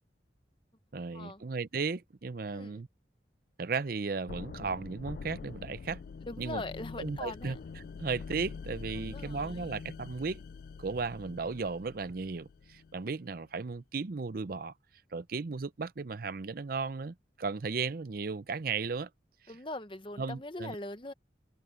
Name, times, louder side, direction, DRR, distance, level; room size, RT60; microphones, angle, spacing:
voice 1, 0.9-2.9 3.6-6.0 6.4-6.6 7.0-10.4 10.8-14.7 15.1-19.1 19.4-19.5 20.2-20.8, right 4 dB, 55° right, 0.6 m, -35 dB
voice 2, 2.5-2.8 6.3-7.6 8.9-9.7 19.5-21.1, left 2 dB, 30° left, 1.0 m, -41 dB
sound 1, 4.3-13.1, left 5 dB, 55° left, 0.3 m, -45 dB
head